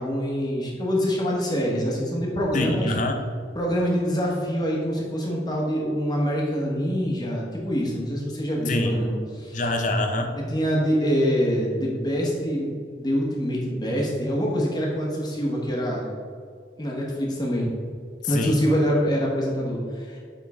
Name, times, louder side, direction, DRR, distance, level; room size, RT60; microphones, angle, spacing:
voice 1, 0.0-2.9 3.5-9.6 10.4-12.7 12.9-16.0 16.8-17.7 18.3-20.2, equal, 20° left, -3 dB, 1.1 m, -25 dB
voice 2, 2.5-3.2 8.7-9.0 9.5-10.4 18.2-18.6, left 2 dB, 40° left, 4 dB, 0.7 m, -25 dB
9.2 x 3.7 x 3.6 m, 2.2 s
head